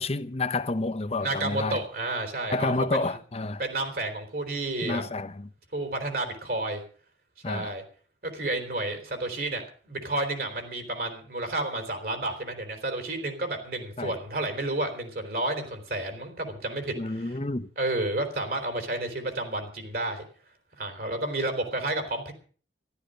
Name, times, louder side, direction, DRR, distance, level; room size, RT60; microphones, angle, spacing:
voice 1, 0.0-1.8 2.5-3.6 4.8-5.5 7.4-7.7 14.0-14.1 16.9-17.7, left 2 dB, 35° left, 0.8 m, -29 dB
voice 2, 1.2-3.1 3.6-5.0 5.7-6.8 7.5-7.8 8.2-17.4 17.8-20.2 20.8-22.3, right 2 dB, 55° right, 3.6 m, -31 dB
14.0 x 12.5 x 6.4 m
head